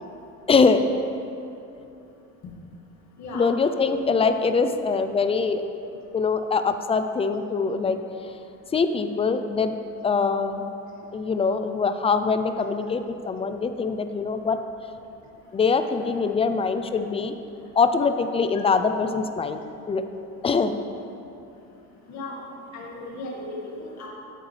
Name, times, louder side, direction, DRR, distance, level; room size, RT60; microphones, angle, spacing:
voice 1, 0.5-0.8 3.3-5.6 6.1-8.0 8.7-9.8 10.0-10.6 11.1-14.6 15.5-17.3 17.8-19.6 19.9-20.0 20.4-20.8, left 5 dB, 20° left, 9 dB, 0.4 m, -23 dB
voice 2, 22.1-22.4 22.7-24.1, left 2 dB, 55° left, -3 dB, 1.9 m, -36 dB
12.0 x 7.8 x 3.3 m, 2.7 s
cardioid pair, 130°, 34 cm